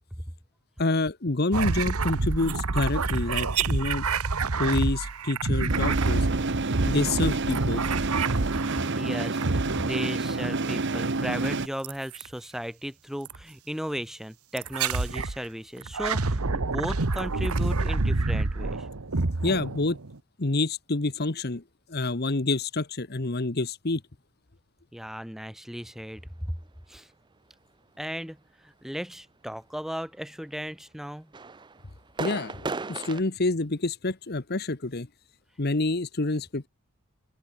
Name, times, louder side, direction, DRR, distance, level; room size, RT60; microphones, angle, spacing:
voice 1, 0.8-4.0 4.6-6.3 6.9-7.8 19.4-20.0 20.4-21.6 21.9-24.0 32.2-35.1 35.6-36.7, left 2 dB, 45° left, 1.2 m, -27 dB
sound 1, 1.5-9.0 9.4-10.1 11.8-12.3 13.3-13.4 14.6-15.4 15.8-20.2, right 3 dB, 85° right, 1.3 m, -28 dB
Machine Printer Warm-up, 5.7-11.7, right 3 dB, 55° right, 1.2 m, -29 dB
voice 2, 8.9-18.9 24.9-26.5 26.9-27.1 28.0-31.3, equal, ahead, 2.1 m, -36 dB
sound 2, 31.3-33.2, right 3 dB, 20° right, 0.5 m, -35 dB
open air
head